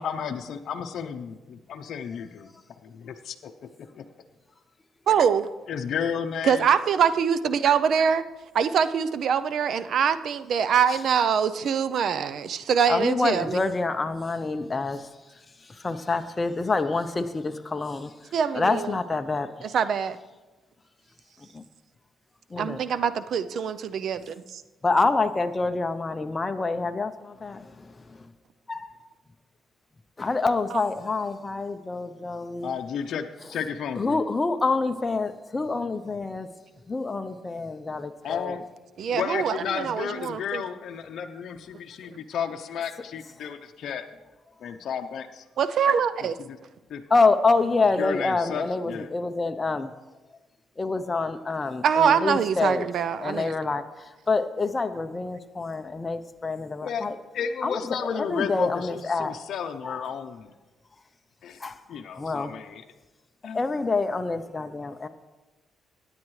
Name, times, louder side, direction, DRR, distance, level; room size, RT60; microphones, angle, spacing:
voice 1, 0.0-2.5 2.8-3.7 5.7-6.7 32.6-34.2 38.2-38.6 39.1-44.0 44.6-45.4 46.5-46.6 46.9-47.0 48.0-49.1 56.8-57.1 57.3-60.5 61.4-61.6 61.9-62.8 63.4-63.6, left 7 dB, 65° left, 5 dB, 0.7 m, -32 dB
voice 2, 5.1-5.5 6.4-8.2 8.5-13.6 18.3-18.9 19.6-20.2 22.6-24.6 39.0-40.6 42.1-42.2 45.6-46.4 51.8-53.5, right 7 dB, 65° right, 13 dB, 0.5 m, -24 dB
voice 3, 12.9-19.5 21.4-21.6 22.5-22.8 24.8-28.3 28.7-28.9 30.2-32.7 34.0-36.5 36.9-38.6 47.1-49.9 50.8-52.9 53.2-57.2 57.6-59.4 59.8-60.0 61.6-62.5 63.5-65.1, left 3 dB, 25° left, 7 dB, 0.6 m, -27 dB
16.5 x 9.7 x 3.2 m, 1.2 s
cardioid pair, 90°, 0 cm